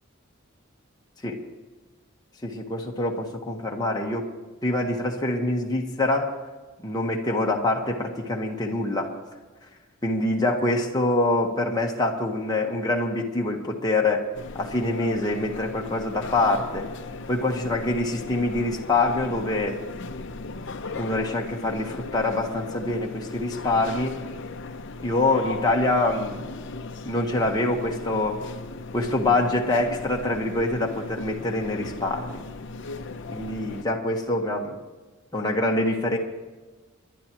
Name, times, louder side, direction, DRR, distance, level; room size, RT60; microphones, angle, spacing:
voice 1, 2.4-4.2 4.6-6.3 6.8-9.1 10.0-14.3 14.6-16.9 17.3-19.8 20.9-24.1 25.0-26.5 27.0-28.4 28.9-32.4 33.3-34.8 35.3-36.2, left 2 dB, 20° left, -1 dB, 1.3 m, -25 dB
sound 1, 14.3-33.8, left 3 dB, 60° left, 0.7 m, -37 dB
28.5 x 11.0 x 3.0 m, 1.3 s
head